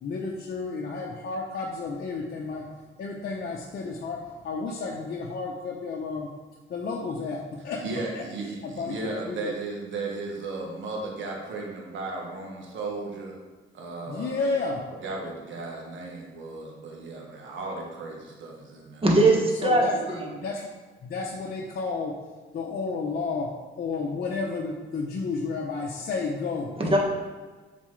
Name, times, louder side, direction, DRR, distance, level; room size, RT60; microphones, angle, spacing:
voice 1, 0.0-2.7 3.0-6.3 6.7-8.2 8.6-9.6 14.1-14.9 19.6-20.7 21.0-22.2 22.5-26.8, left 4 dB, 55° left, -1 dB, 0.7 m, -32 dB
voice 2, 7.8-13.4 13.7-14.4 15.0-19.0, right 3 dB, 70° right, -1 dB, 1.3 m, -35 dB
voice 3, 19.0-20.3 26.8-27.0, right 2 dB, 25° right, -2 dB, 1.5 m, -21 dB
7.2 x 4.2 x 3.3 m, 1.3 s
cardioid pair, 90°, 20 cm